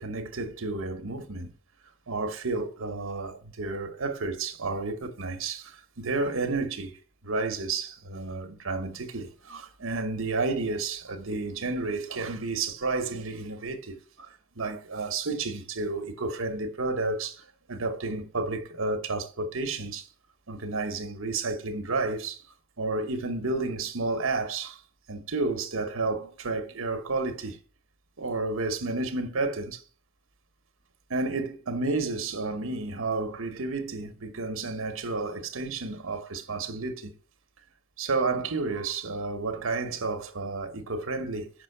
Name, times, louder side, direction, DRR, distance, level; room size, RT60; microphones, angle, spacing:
voice 1, 0.0-1.5 2.1-6.9 7.2-20.1 20.5-22.4 22.8-24.8 25.1-27.6 28.2-29.8 31.1-37.1 38.0-41.5, right 3 dB, 85° right, 1.0 m, -31 dB
6.2 x 5.2 x 6.5 m
head